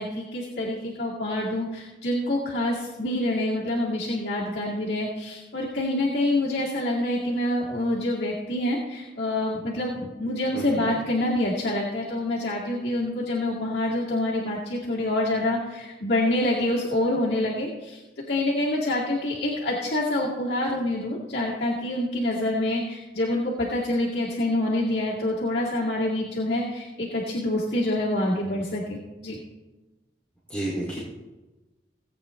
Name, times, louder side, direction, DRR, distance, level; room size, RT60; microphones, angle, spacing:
voice 1, 0.0-18.0 18.3-29.4, left 1 dB, 65° left, -7 dB, 2.2 m, -26 dB
voice 2, 10.5-10.9 30.5-31.0, right 1 dB, 10° left, -7 dB, 2.6 m, -31 dB
18.5 x 8.8 x 3.2 m, 1.1 s
head